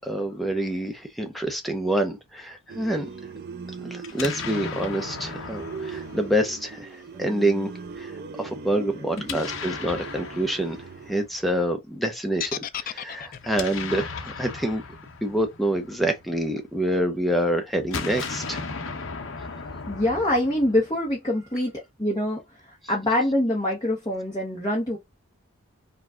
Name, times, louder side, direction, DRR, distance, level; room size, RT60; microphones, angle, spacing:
voice 1, 0.0-3.1 3.8-7.7 8.0-8.1 8.4-10.8 11.1-12.5 12.8-14.8 15.2-18.6, right 1 dB, ahead, 0.6 m, -27 dB
sound 1, 2.7-11.2, right 5 dB, 45° right, 0.4 m, -40 dB
Explosion, 4.0-7.1 9.1-11.4 13.3-16.7 17.7-21.1, left 5 dB, 60° left, 0.8 m, -37 dB
voice 2, 8.9-9.4 19.6-22.4 22.7-25.0, left 1 dB, 20° left, 1.0 m, -25 dB
sound 2, 12.4-16.5, left 10 dB, 40° left, 0.3 m, -36 dB
4.9 x 2.4 x 3.6 m
head